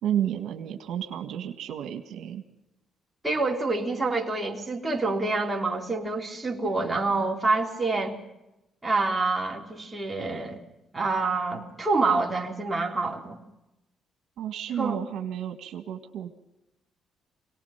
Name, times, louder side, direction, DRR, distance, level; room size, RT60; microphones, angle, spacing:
voice 1, 0.0-2.4 14.4-16.3, right 10 dB, 80° right, 6 dB, 1.6 m, -31 dB
voice 2, 3.2-8.2 8.8-10.6 10.9-13.4 14.8-15.0, right 3 dB, 15° right, 0 dB, 3.6 m, -27 dB
25.5 x 18.5 x 5.7 m, 0.94 s
cardioid pair, 90°, 0 cm